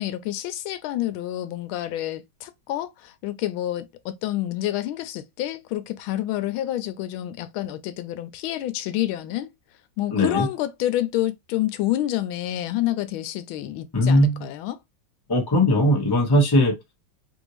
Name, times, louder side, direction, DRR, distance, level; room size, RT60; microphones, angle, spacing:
voice 1, 0.0-9.5 10.0-14.8, left 13 dB, 90° left, 1.4 m, -28 dB
voice 2, 10.1-10.5 13.9-14.4 15.3-16.7, left 1 dB, 20° left, 0.6 m, -19 dB
3.4 x 2.6 x 3.0 m
omnidirectional pair, 2.2 m